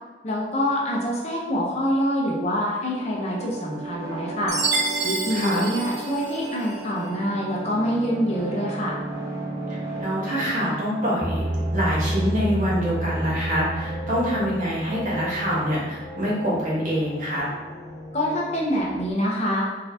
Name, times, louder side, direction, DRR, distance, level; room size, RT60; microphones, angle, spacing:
voice 1, 0.2-4.6 5.0-9.0 18.1-19.6, equal, 35° left, -3 dB, 0.8 m, -25 dB
sound 1, 2.5-17.9, right 2 dB, 15° right, 0.7 m, -36 dB
Chime, 4.5-6.8, right 3 dB, 85° right, 0.9 m, -28 dB
voice 2, 5.3-5.6 10.0-11.4 11.7-17.5, equal, 45° right, -7 dB, 1.2 m, -25 dB
sound 2, 11.2-19.1, right 1 dB, 20° left, 0.4 m, -31 dB
3.7 x 3.3 x 2.8 m, 1.3 s
head